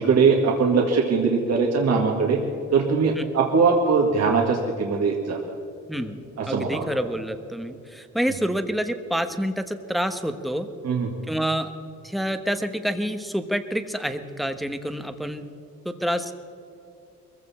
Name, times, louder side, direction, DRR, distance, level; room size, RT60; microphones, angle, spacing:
voice 1, 0.0-2.4 2.7-5.4 6.4-6.9 10.8-11.1, right 5 dB, 60° right, 0 dB, 1.9 m, -21 dB
voice 2, 5.9-10.7 11.3-11.7 12.0-15.5 15.8-16.3, equal, ahead, 8 dB, 1.1 m, -28 dB
22.0 x 15.5 x 4.3 m, 2.6 s
cardioid pair, 90°, 30 cm